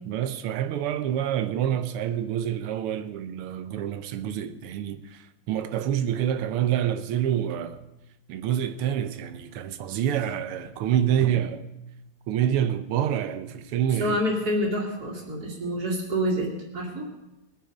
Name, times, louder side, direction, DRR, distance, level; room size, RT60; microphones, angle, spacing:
voice 1, 0.1-7.8 8.3-11.6 12.3-14.2, right 10 dB, 90° right, 1.7 m, -27 dB
voice 2, 14.0-17.1, equal, 45° right, 2.9 m, -27 dB
21.5 x 9.3 x 5.3 m
omnidirectional pair, 2.4 m